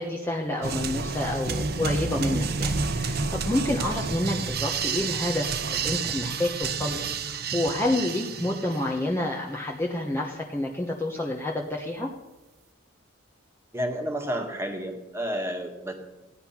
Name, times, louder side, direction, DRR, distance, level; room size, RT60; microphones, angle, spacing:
voice 1, 0.0-12.1, left 1 dB, 10° left, -1 dB, 1.1 m, -29 dB
sound 1, 0.6-9.1, right 4 dB, 50° right, 1.0 m, -30 dB
voice 2, 13.7-15.9, equal, 10° right, 3 dB, 1.8 m, -30 dB
16.0 x 10.0 x 5.9 m, 1.1 s
head